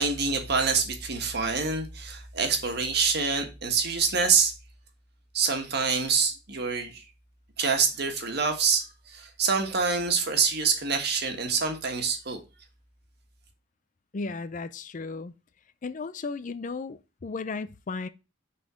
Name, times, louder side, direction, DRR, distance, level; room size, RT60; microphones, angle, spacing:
voice 1, 0.0-4.5 5.3-7.0 7.6-12.4, right 5 dB, 55° right, 1.6 m, -26 dB
voice 2, 14.1-15.3 15.8-18.1, left 4 dB, 40° left, 0.4 m, -35 dB
6.7 x 4.1 x 6.2 m
head